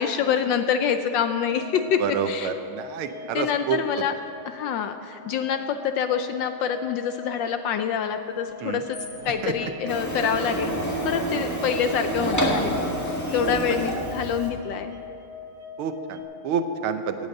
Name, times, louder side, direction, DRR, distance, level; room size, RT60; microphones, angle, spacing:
voice 1, 0.0-2.5 3.3-4.1 4.4-9.0 9.2-10.7 11.0-12.7 13.3-14.9, left 8 dB, 75° left, 9 dB, 1.1 m, -26 dB
sound 1, 1.5-16.2, left 3 dB, 55° right, 1.4 m, -42 dB
voice 2, 2.0-3.8 8.6-8.8 9.4-9.7 13.5-13.6 15.8-17.2, right 7 dB, 80° right, 8 dB, 1.7 m, -28 dB
sound 2, 8.4-10.4 11.2-11.3 11.5-11.6 12.3-14.4, left 2 dB, 45° left, 1.4 m, -45 dB
Printer, 9.9-14.5, right 1 dB, 10° left, 1.4 m, -28 dB
17.5 x 8.2 x 6.5 m, 2.7 s
omnidirectional pair, 2.4 m